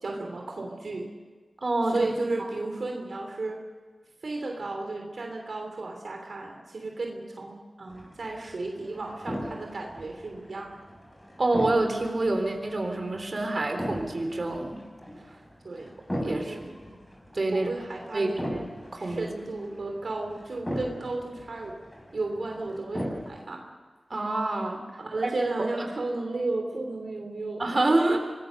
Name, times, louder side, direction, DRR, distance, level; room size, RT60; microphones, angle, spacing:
voice 1, 0.0-1.1 1.8-3.6 4.2-10.8 15.6-15.9 16.2-17.0 17.5-18.5 18.9-21.8 22.1-23.6 25.0-27.8, right 2 dB, 75° right, 2 dB, 3.2 m, -34 dB
voice 2, 1.6-2.1 11.4-14.8 16.2-16.7 17.3-17.7 18.1-18.7 19.0-19.3 24.1-24.8 25.2-25.3 25.8-25.9 27.6-28.2, right 2 dB, 55° right, 4 dB, 3.8 m, -27 dB
sound 1, 7.9-23.4, equal, 10° left, 6.7 m, -39 dB
24.5 x 20.0 x 6.5 m, 1.4 s
cardioid pair, 50°, 0 cm